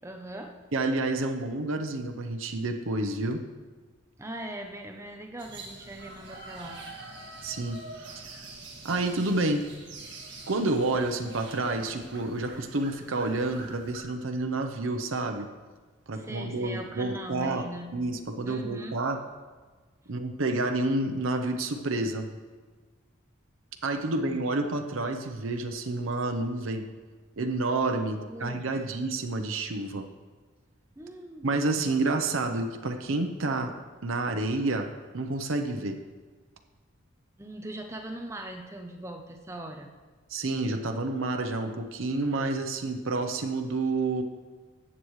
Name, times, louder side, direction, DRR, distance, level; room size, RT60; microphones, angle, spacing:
voice 1, 0.0-0.5 4.2-6.8 16.1-17.9 18.4-19.0 24.1-24.4 28.2-28.6 31.0-31.5 37.4-39.9, right 1 dB, 15° right, 3 dB, 0.6 m, -40 dB
voice 2, 0.7-3.4 7.4-8.2 8.8-9.7 10.5-15.5 16.1-17.7 17.9-19.2 20.1-22.3 23.8-26.8 27.4-30.1 31.4-33.7 34.0-36.0 40.3-44.2, right 2 dB, 75° right, 5 dB, 0.8 m, -29 dB
sound 1, 5.4-14.0, right 2 dB, 55° right, 1.9 m, -45 dB
13.5 x 8.2 x 3.2 m, 1.4 s
head